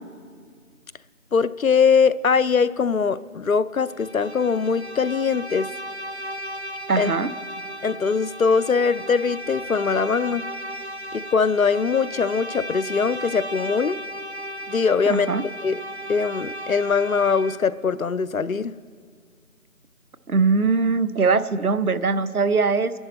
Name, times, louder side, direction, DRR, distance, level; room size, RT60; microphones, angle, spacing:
voice 1, 1.3-5.7 7.0-7.1 7.8-10.5 11.1-14.0 14.7-15.3 15.6-15.8 16.1-18.7, left 5 dB, 70° left, 17 dB, 0.5 m, -21 dB
Bowed string instrument, 3.9-17.8, equal, 50° right, 0.5 m, -35 dB
voice 2, 6.9-7.3 15.1-15.4 20.3-22.9, right 4 dB, 85° right, 14 dB, 0.8 m, -21 dB
28.5 x 11.0 x 4.1 m, 2.1 s
figure-of-eight pair, 175°, 43 cm